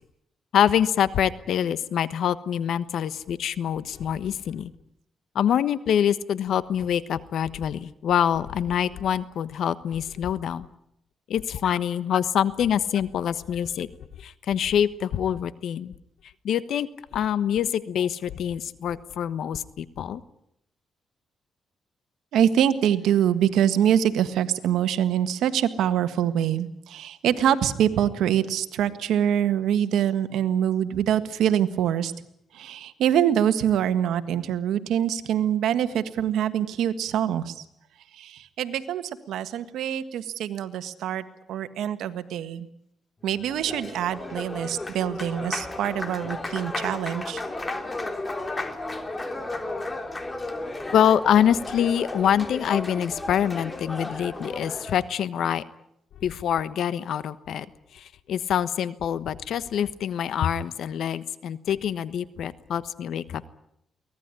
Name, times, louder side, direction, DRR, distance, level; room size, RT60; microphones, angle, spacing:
voice 1, 0.5-4.7 5.3-10.7 11.3-13.9 14.2-15.9 16.4-20.2 50.9-55.6 56.2-57.7 57.9-63.5, left 9 dB, 75° left, 15 dB, 1.2 m, -25 dB
voice 2, 22.3-32.1 32.5-37.6 38.1-42.7 43.2-47.4, right 10 dB, 90° right, 11 dB, 1.6 m, -24 dB
Applause, 43.3-55.1, left 2 dB, 25° left, 3.3 m, -34 dB
23.5 x 18.0 x 9.8 m, 0.77 s
cardioid pair, 85°, 0 cm